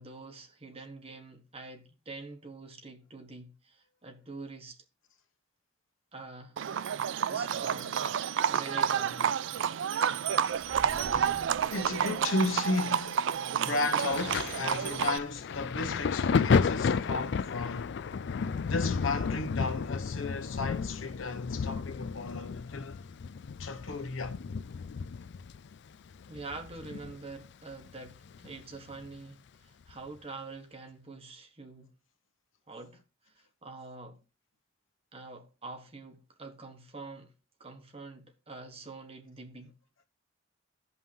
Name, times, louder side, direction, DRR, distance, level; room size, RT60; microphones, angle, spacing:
voice 1, 0.0-4.8 6.1-6.6 7.3-9.3 26.3-31.9 32.7-33.0 33.2-34.2 35.1-37.3 37.6-39.7, right 3 dB, 30° right, 1.3 m, -46 dB
Livestock farm animals working animals, 6.6-15.2, right 8 dB, 65° right, 0.4 m, -30 dB
sound 1, 10.5-13.4, right 1 dB, 10° right, 0.9 m, -47 dB
voice 2, 11.6-18.0 18.7-23.0 23.6-24.4, left 3 dB, 80° left, 1.1 m, -34 dB
Thunder, 14.1-27.5 27.7-29.1 29.9-30.1, left 5 dB, 60° left, 0.4 m, -32 dB
16.0 x 5.5 x 2.8 m
head